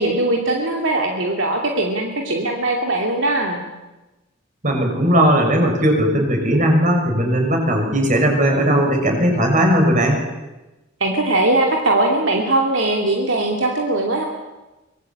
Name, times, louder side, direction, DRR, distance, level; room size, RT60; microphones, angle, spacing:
voice 1, 0.0-3.6 11.0-14.2, right 2 dB, 70° right, 1 dB, 2.8 m, -20 dB
voice 2, 4.6-10.2, equal, 40° right, 2 dB, 6.3 m, -17 dB
24.5 x 20.5 x 8.8 m, 1.1 s
head